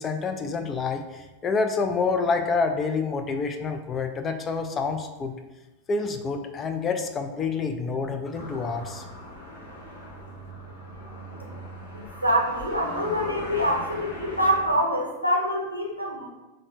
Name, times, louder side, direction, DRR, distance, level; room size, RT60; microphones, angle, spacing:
voice 1, 0.0-5.3 5.9-9.0, left 4 dB, 25° left, 6 dB, 0.3 m, -27 dB
sound 1, 8.3-14.8, equal, 60° left, 0.8 m, -39 dB
voice 2, 11.9-16.3, equal, 90° right, -2 dB, 0.6 m, -25 dB
3.7 x 2.1 x 3.1 m, 1.1 s
figure-of-eight pair, 90°, 0 cm